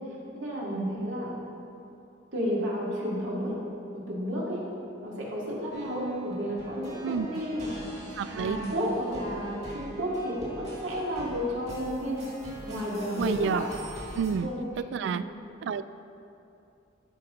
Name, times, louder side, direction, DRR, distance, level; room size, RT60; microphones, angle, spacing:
voice 1, 0.3-1.3 2.3-3.5 3.9-4.6 5.0-7.9 8.2-12.3 12.6-13.6 14.3-14.6 15.0-15.4, equal, 80° right, -5 dB, 2.2 m, -32 dB
sound 1, 5.7-14.3, right 1 dB, 35° right, 2.1 m, -42 dB
voice 2, 8.2-8.6 13.2-13.7 14.1-14.5 14.9-15.2 15.6-15.8, right 7 dB, 65° right, 14 dB, 0.3 m, -29 dB
13.5 x 5.9 x 3.7 m, 2.7 s
head